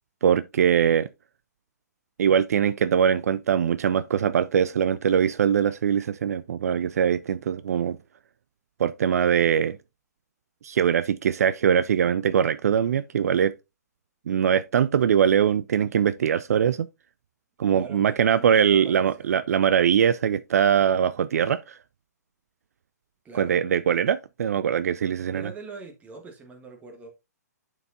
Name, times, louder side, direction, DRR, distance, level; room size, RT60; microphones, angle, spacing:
voice 1, 0.2-1.1 2.2-8.0 8.8-9.8 10.6-13.6 14.3-16.9 17.6-21.8 23.4-25.5, right 8 dB, 60° right, 0.3 m, -22 dB
voice 2, 17.7-19.5 23.2-23.6 25.3-27.1, right 4 dB, 15° right, 1.6 m, -43 dB
11.0 x 4.6 x 2.6 m
figure-of-eight pair, 120°, 9 cm